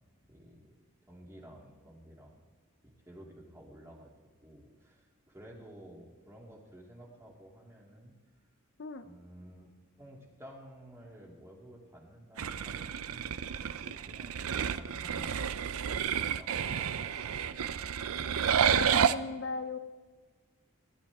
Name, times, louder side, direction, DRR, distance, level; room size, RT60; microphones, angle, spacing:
voice 1, 0.3-2.4 2.8-4.1 4.4-8.1 9.0-9.7 10.0-16.1 16.4-17.7, equal, 15° right, -2 dB, 2.6 m, -53 dB
sound 1, 12.4-19.1, right 8 dB, 85° right, 0.5 m, -30 dB
voice 2, 18.7-19.8, left 4 dB, 55° left, 9 dB, 0.6 m, -38 dB
19.5 x 11.5 x 3.6 m, 1.4 s
head